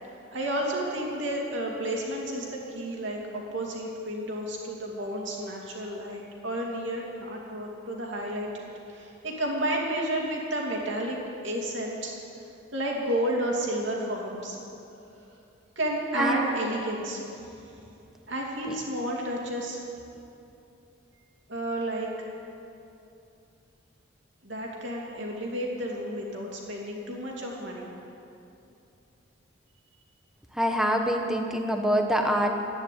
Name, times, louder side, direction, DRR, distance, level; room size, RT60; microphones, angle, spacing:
voice 1, 0.3-11.2 11.4-12.1 12.7-14.6 15.8-17.5 18.3-19.8 21.5-22.1 24.4-27.9, right 1 dB, 70° right, -2 dB, 2.8 m, -31 dB
voice 2, 16.2-16.5 18.7-18.8 30.5-32.5, equal, 5° right, 3 dB, 1.1 m, -25 dB
12.5 x 9.8 x 9.4 m, 2.7 s
head